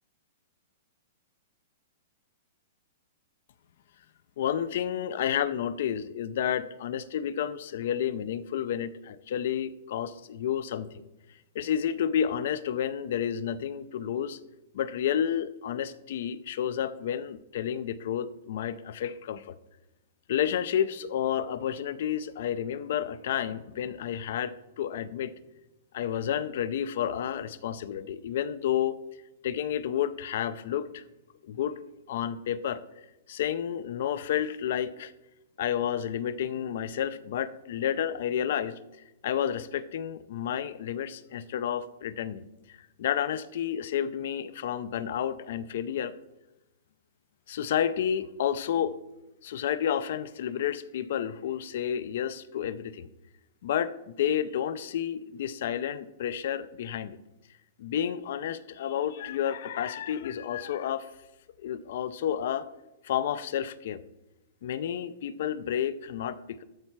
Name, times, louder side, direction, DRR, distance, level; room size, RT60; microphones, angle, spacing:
voice 1, 4.4-11.0 11.5-14.4 14.7-19.6 20.3-25.3 25.9-29.0 29.4-31.0 31.4-31.8 32.1-32.8 33.3-35.1 35.6-38.7 39.2-42.4 42.7-46.1 47.5-48.9 49.4-53.1 53.6-57.2 57.8-61.1 61.6-62.7 63.0-64.0 64.6-66.6, left 9 dB, 50° left, 16 dB, 0.4 m, -30 dB
13.0 x 4.4 x 4.5 m, 0.97 s
hypercardioid pair, 175°, 0 cm